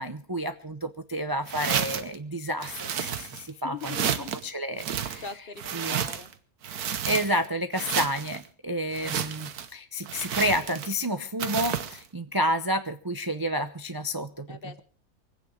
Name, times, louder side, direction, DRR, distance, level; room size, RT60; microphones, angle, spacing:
voice 1, 0.0-4.0 4.4-5.2 5.7-6.1 7.1-14.8, equal, 25° right, 9 dB, 0.5 m, -30 dB
sound 1, 1.5-2.1 2.6-3.5 3.8-4.4 4.8-6.3 6.6-7.5 7.7-8.4 8.9-9.7 10.1-11.0 11.4-12.0, right 8 dB, 85° right, 1.5 m, -31 dB
voice 2, 3.5-4.4 5.2-6.3 14.5-14.8, left 5 dB, 45° left, 11 dB, 1.0 m, -41 dB
24.0 x 9.0 x 5.1 m, 0.40 s
omnidirectional pair, 1.6 m